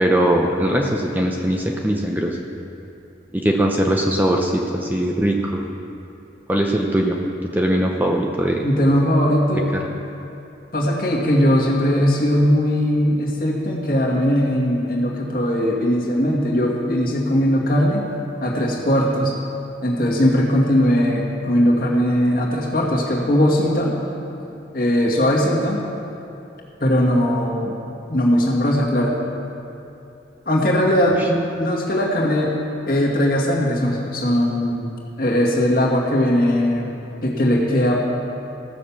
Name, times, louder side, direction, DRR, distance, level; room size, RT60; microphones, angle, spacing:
voice 1, 0.0-2.4 3.3-5.7 6.5-7.2 7.5-8.6, right 1 dB, 10° right, 0 dB, 0.7 m, -20 dB
voice 2, 8.6-9.7 10.7-18.0 18.4-19.3 19.8-23.9 24.7-25.8 26.8-27.7 28.1-29.1 30.5-32.6 32.9-34.9 35.2-36.9 37.2-38.0, equal, 50° left, -3 dB, 2.0 m, -19 dB
15.0 x 6.6 x 7.2 m, 2.8 s
head